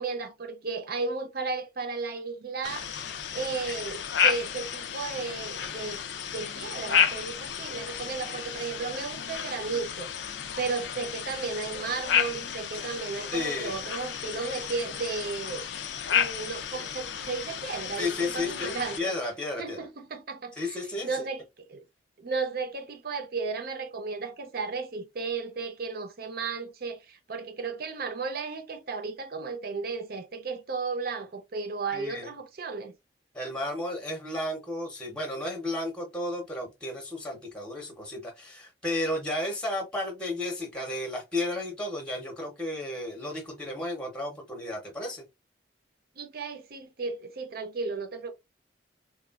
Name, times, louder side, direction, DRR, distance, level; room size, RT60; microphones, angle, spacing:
voice 1, 0.0-2.9 3.3-6.0 6.3-10.1 10.6-15.7 16.1-19.1 19.6-21.8 22.2-32.9 46.2-48.3, right 4 dB, 60° right, 0.6 m, -34 dB
sound 1, 2.6-19.0, left 8 dB, 85° left, 0.4 m, -32 dB
voice 2, 13.3-13.8 18.0-19.9 20.6-21.3 31.9-32.3 33.3-45.2, left 2 dB, 5° left, 0.8 m, -33 dB
3.0 x 2.3 x 2.3 m
head